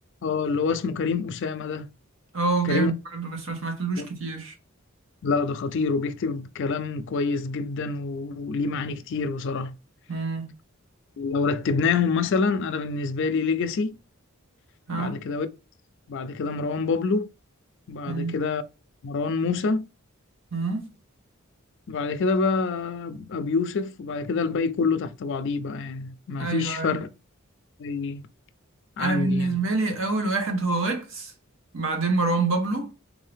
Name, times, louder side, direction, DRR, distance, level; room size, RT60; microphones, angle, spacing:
voice 1, 0.2-1.9 2.6-2.9 4.0-4.1 5.2-9.7 11.2-13.9 14.9-15.5 16.1-17.3 17.9-18.6 19.0-19.8 21.9-27.1 27.8-28.3 29.0-29.6, left 4 dB, 60° left, 0.4 m, -26 dB
voice 2, 2.3-4.5 10.1-10.5 14.9-15.2 18.1-18.3 20.5-20.9 26.4-27.0 29.0-31.3 31.7-32.9, right 3 dB, 70° right, 1.1 m, -26 dB
3.7 x 2.7 x 3.3 m
head